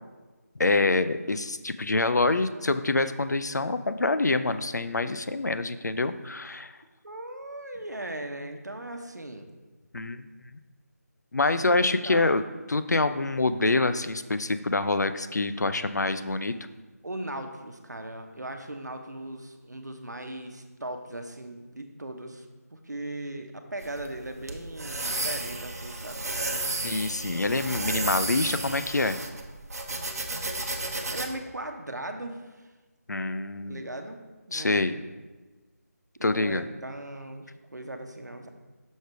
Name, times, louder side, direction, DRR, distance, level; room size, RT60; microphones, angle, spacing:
voice 1, 0.6-6.7 9.9-10.2 11.3-12.4 12.7-16.5 26.8-29.2 33.1-33.9 34.5-34.9 36.2-36.6, left 3 dB, 80° left, 11 dB, 0.5 m, -26 dB
voice 2, 7.0-9.5 11.6-12.4 17.0-22.5 22.7-26.3 31.1-32.7 33.7-34.2 34.5-35.0 36.2-38.5, right 1 dB, 85° right, 5 dB, 1.0 m, -38 dB
sound 1, 23.8-31.3, right 2 dB, 60° right, 1.0 m, -33 dB
6.4 x 5.1 x 4.6 m, 1.3 s
figure-of-eight pair, 165°, 9 cm